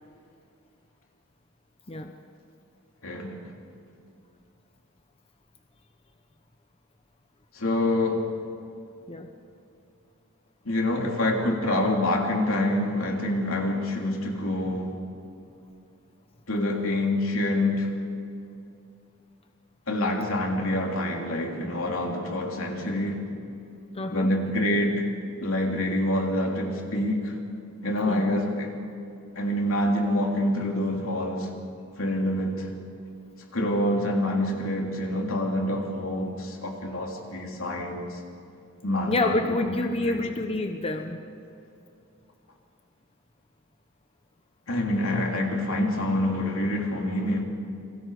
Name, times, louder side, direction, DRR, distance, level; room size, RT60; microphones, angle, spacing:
voice 1, 3.0-3.4 7.5-8.3 10.6-14.9 16.5-17.9 19.9-23.2 24.1-25.0 25.4-27.3 27.8-28.7 29.4-31.5 32.0-32.7 33.5-38.1 38.8-39.5 40.0-40.2 44.7-47.4, left 1 dB, 75° left, 3.3 m, -26 dB
voice 2, 23.9-24.3 28.1-28.4 39.1-41.2, left 2 dB, 30° left, 0.9 m, -28 dB
29.0 x 22.5 x 5.0 m
head